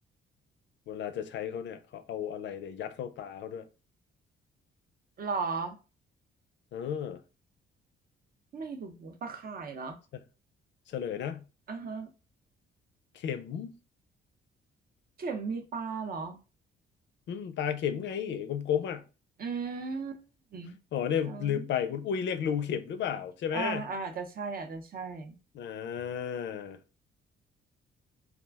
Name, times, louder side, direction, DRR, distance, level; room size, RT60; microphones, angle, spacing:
voice 1, 0.9-3.7 6.7-7.2 10.9-11.4 13.1-13.7 17.3-19.0 20.9-23.8 25.5-26.8, left 8 dB, 65° left, 0.5 m, -33 dB
voice 2, 5.2-5.8 8.5-10.0 11.7-12.1 15.2-16.4 19.4-20.2 20.5-20.8 21.2-21.6 23.5-25.4, right 4 dB, 50° right, 0.6 m, -36 dB
2.4 x 2.1 x 3.3 m
cardioid pair, 90°, 20 cm